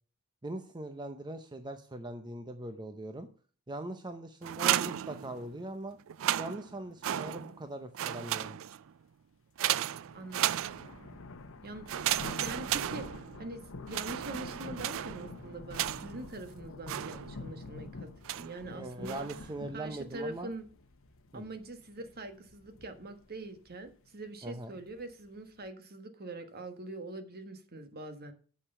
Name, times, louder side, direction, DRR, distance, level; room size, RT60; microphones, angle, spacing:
voice 1, 0.4-3.3 3.7-6.0 6.4-8.6 18.7-20.5 21.3-21.4 24.4-24.7, right 1 dB, 20° right, 8 dB, 0.7 m, -41 dB
sound 1, 4.4-5.7 6.1-7.7 7.9-8.9 9.6-11.2 11.9-13.5 13.9-16.3 16.9-17.6 18.3-18.6 19.0-19.5, right 12 dB, 65° right, 0.4 m, -34 dB
sound 2, 9.9-25.7, left 2 dB, 65° left, 1.0 m, -48 dB
voice 2, 10.1-10.6 11.6-18.1 18.4-19.3 19.7-20.6 21.3-28.3, right 2 dB, 45° right, 8 dB, 1.4 m, -43 dB
8.9 x 6.6 x 6.7 m, 0.41 s
head